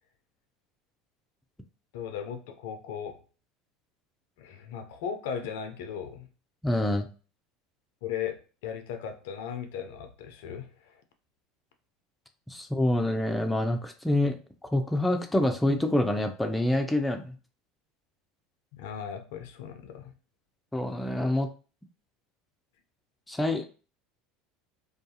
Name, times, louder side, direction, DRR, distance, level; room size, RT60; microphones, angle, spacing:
voice 1, 1.9-3.2 4.4-6.3 8.0-11.0 18.7-20.1, left 8 dB, 70° left, 7 dB, 0.4 m, -37 dB
voice 2, 6.6-7.1 12.5-14.4 14.6-17.3 20.7-21.5 23.3-23.7, left 1 dB, 10° left, 5 dB, 0.4 m, -26 dB
2.4 x 2.3 x 2.6 m, 0.36 s
hypercardioid pair, 80°, 0 cm